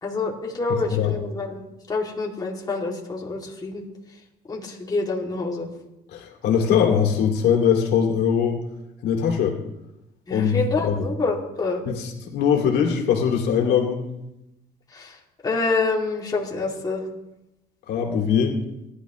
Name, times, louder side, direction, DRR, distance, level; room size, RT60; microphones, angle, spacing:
voice 1, 0.0-3.8 4.5-5.7 10.3-11.8 14.9-15.2 15.4-17.0, left 3 dB, 25° left, -2 dB, 2.5 m, -27 dB
voice 2, 0.7-1.1 6.1-8.6 9.0-9.6 10.3-11.1 11.9-14.1 17.9-18.6, left 7 dB, 75° left, 1 dB, 2.4 m, -21 dB
18.5 x 11.5 x 3.1 m, 0.90 s
cardioid pair, 110°, 17 cm